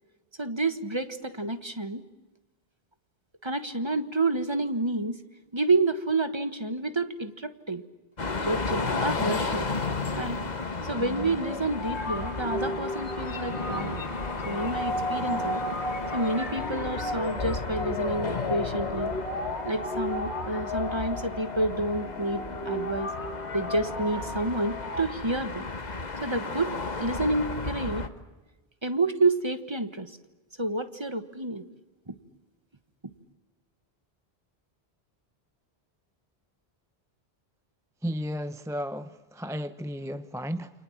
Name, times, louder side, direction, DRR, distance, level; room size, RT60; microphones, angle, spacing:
voice 1, 0.4-2.0 3.4-5.2 5.5-7.8 8.4-9.7 10.1-10.4 10.8-14.0 14.4-15.6 16.1-19.1 19.6-23.1 23.5-25.6 26.2-28.1 28.8-30.2 30.6-31.6 32.1-32.2, right 2 dB, 25° right, 10 dB, 1.5 m, -29 dB
sound 1, 8.2-28.1, left 3 dB, 40° left, 1.5 m, -34 dB
sound 2, 10.7-25.0, left 1 dB, 90° left, 2.7 m, -34 dB
voice 2, 38.0-40.7, equal, 5° right, 11 dB, 0.6 m, -33 dB
29.0 x 26.5 x 7.4 m, 1.2 s
omnidirectional pair, 1.1 m